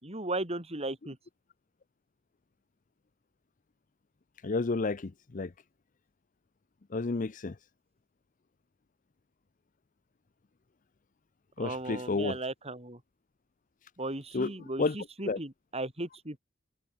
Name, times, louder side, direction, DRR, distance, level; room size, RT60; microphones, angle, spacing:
voice 1, 0.0-1.2 11.6-13.0 14.0-16.4, right 2 dB, 30° right, 5.2 m, -36 dB
voice 2, 4.4-5.5 6.9-7.5 11.6-12.4 14.3-14.5 14.8-15.0 15.2-15.4, left 3 dB, 45° left, 0.6 m, -30 dB
head